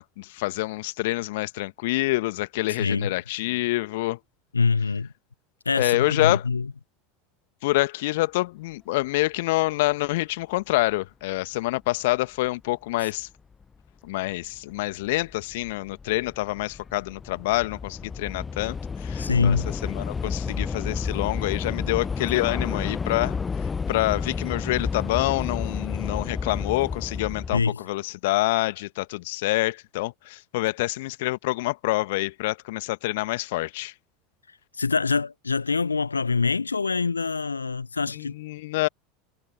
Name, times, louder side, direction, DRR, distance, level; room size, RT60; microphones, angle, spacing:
voice 1, 0.0-4.2 5.7-6.5 7.6-13.3 14.0-33.9 38.1-38.9, left 20 dB, 60° left, 1.5 m, -27 dB
voice 2, 2.8-3.1 4.5-5.1 5.7-6.7 19.2-19.7 27.5-27.8 34.8-38.3, left 4 dB, 85° left, 0.4 m, -24 dB
Train / Subway metro underground, 13.6-13.7 14.5-14.8 15.1-27.6, left 5 dB, 20° left, 0.6 m, -31 dB
figure-of-eight pair, 80°, 0 cm